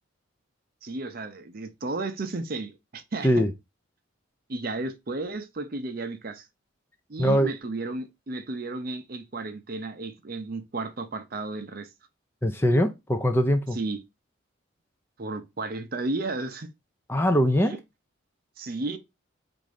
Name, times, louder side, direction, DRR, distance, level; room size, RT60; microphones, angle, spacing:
voice 1, 0.8-3.3 4.5-6.5 7.1-11.9 13.7-14.0 15.2-16.7 17.6-17.8 18.6-19.0, right 2 dB, 45° right, 0.6 m, -33 dB
voice 2, 7.2-7.5 12.4-13.8 17.1-17.8, equal, 10° left, 0.4 m, -22 dB
4.2 x 2.6 x 4.9 m
head